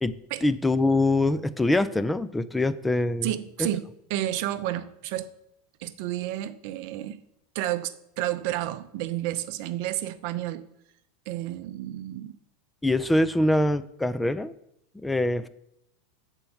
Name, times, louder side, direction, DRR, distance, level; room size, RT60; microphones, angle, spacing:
voice 1, 0.0-3.3 3.6-3.7 12.8-14.5 15.0-15.5, left 2 dB, 10° left, 0.4 m, -24 dB
voice 2, 3.2-5.3 5.8-7.2 7.5-10.7 11.3-12.4, right 13 dB, 60° right, 0.5 m, -31 dB
7.6 x 4.5 x 7.1 m
hypercardioid pair, 115°, 0 cm